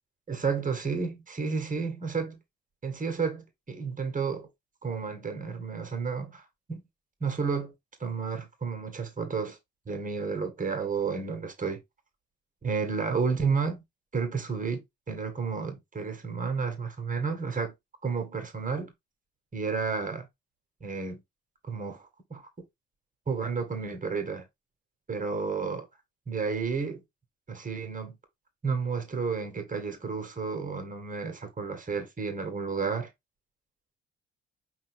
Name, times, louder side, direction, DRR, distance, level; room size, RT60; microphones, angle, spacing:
voice 1, 0.3-2.4 2.8-4.5 4.8-6.8 7.2-7.7 8.0-9.6 9.9-11.8 12.6-13.8 14.1-17.7 18.0-18.9 19.5-20.3 20.8-21.2 21.6-22.5 23.3-24.5 25.1-25.9 26.3-27.0 27.5-28.2 28.6-33.1, right 5 dB, 25° right, 1.8 m, -31 dB
5.3 x 2.7 x 3.6 m
figure-of-eight pair, 45°, 31 cm